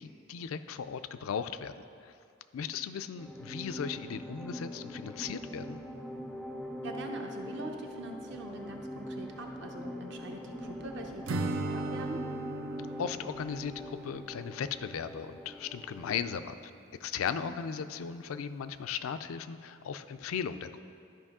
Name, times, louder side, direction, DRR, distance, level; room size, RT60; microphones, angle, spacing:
voice 1, 0.0-1.7 2.0-2.1 2.5-5.8 13.0-16.6 17.0-20.8, left 7 dB, 80° left, 11 dB, 0.4 m, -37 dB
sound 1, 3.2-16.5, equal, ahead, 0.3 m, -42 dB
voice 2, 6.8-12.3 17.4-17.6, right 2 dB, 60° right, 2 dB, 0.9 m, -43 dB
Acoustic guitar / Strum, 11.3-15.2, right 2 dB, 75° right, 0.5 m, -38 dB
12.5 x 5.3 x 3.6 m, 2.4 s
head